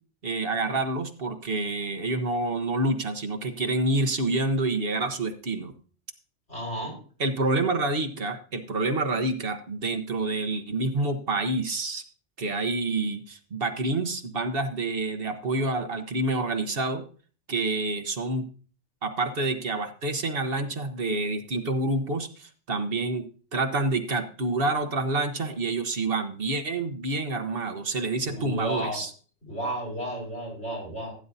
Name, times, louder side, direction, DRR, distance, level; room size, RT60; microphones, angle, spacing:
voice 1, 0.2-5.7 7.2-12.0 12.4-17.0 17.5-18.4 19.0-23.2 23.5-29.1, right 2 dB, 55° right, 7 dB, 1.3 m, -28 dB
voice 2, 6.5-6.9 28.2-29.0 29.5-31.1, right 1 dB, 85° left, -1 dB, 5.6 m, -32 dB
16.0 x 9.6 x 2.7 m, 0.40 s
omnidirectional pair, 1.2 m